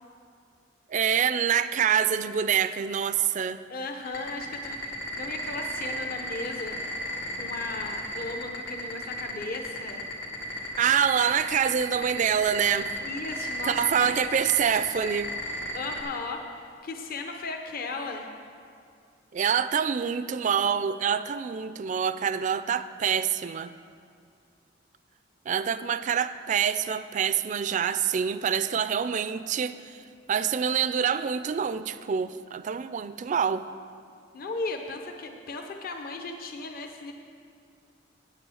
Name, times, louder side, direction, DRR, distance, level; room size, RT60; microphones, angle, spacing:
voice 1, 0.9-3.6 10.8-12.9 13.6-15.3 19.3-23.7 25.5-30.0 30.3-33.6, right 7 dB, 40° right, 13 dB, 0.3 m, -26 dB
voice 2, 3.7-6.8 7.4-10.1 13.0-14.1 14.4-14.5 15.7-18.3 34.3-37.1, left 3 dB, 50° left, 4 dB, 0.7 m, -36 dB
sound 1, 4.0-16.0, left 1 dB, 85° left, 2.0 m, -34 dB
8.9 x 8.8 x 6.3 m, 2.3 s
head